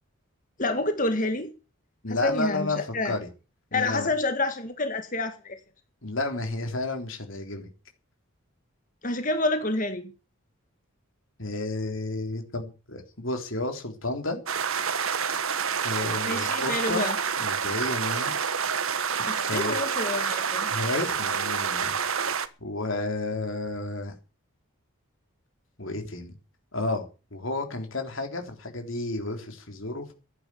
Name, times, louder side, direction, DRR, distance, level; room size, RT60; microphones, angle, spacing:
voice 1, 0.6-1.5 2.1-3.1 3.7-5.6 9.0-10.1 16.2-17.2 19.3-20.7, left 2 dB, 35° left, 1.9 m, -28 dB
voice 2, 2.0-3.3 3.7-4.1 6.0-7.7 11.4-14.4 15.8-17.1 17.4-18.4 19.2-19.8 20.7-22.0 22.6-24.1 25.8-26.4 26.7-27.1 27.3-30.1, left 2 dB, 65° left, 3.7 m, -31 dB
sound 1, 14.5-22.5, right 6 dB, 75° right, 1.4 m, -28 dB
15.0 x 11.0 x 7.1 m
head